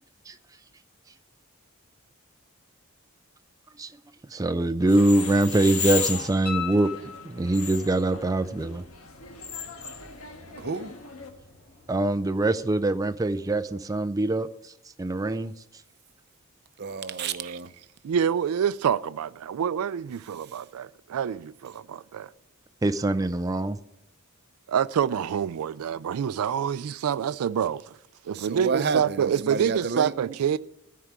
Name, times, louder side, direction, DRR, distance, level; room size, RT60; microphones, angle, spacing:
voice 1, 4.3-8.8 11.9-14.7 15.0-15.5 22.8-23.8, right 2 dB, 15° right, 0.4 m, -24 dB
sound 1, 4.8-11.3, left 6 dB, 90° left, 1.5 m, -35 dB
sound 2, 6.3-13.9, left 1 dB, 30° left, 2.2 m, -56 dB
sound 3, 6.5-7.8 10.6-10.7, left 8 dB, 50° left, 2.2 m, -36 dB
voice 2, 10.6-10.9 16.8-17.7 20.3-20.6 28.3-30.1, right 5 dB, 50° right, 0.7 m, -30 dB
voice 3, 18.0-22.3 24.7-27.9 28.3-30.6, right 8 dB, 90° right, 0.4 m, -27 dB
13.5 x 4.7 x 8.8 m
head